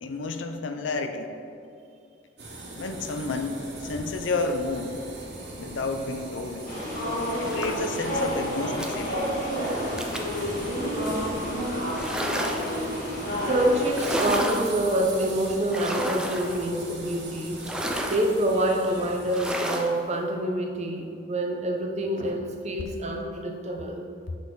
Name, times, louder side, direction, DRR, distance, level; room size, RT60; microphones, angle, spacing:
voice 1, 0.0-1.3 2.8-5.0 5.5-6.7 7.4-9.3, left 3 dB, 75° left, 7 dB, 0.5 m, -31 dB
sound 1, 2.4-19.5, right 1 dB, 65° right, 1.5 m, -41 dB
sound 2, 6.7-14.3, equal, 50° left, 1.6 m, -30 dB
sound 3, 7.5-7.9 8.8-9.0 10.0-10.4 11.9-12.8 13.9-14.7 15.7-16.6 17.6-18.3 19.3-19.9, equal, 5° right, 0.5 m, -31 dB
voice 2, 13.4-17.6 18.1-24.0, right 1 dB, 35° right, 2 dB, 0.7 m, -26 dB
6.3 x 5.9 x 3.8 m, 2.5 s
head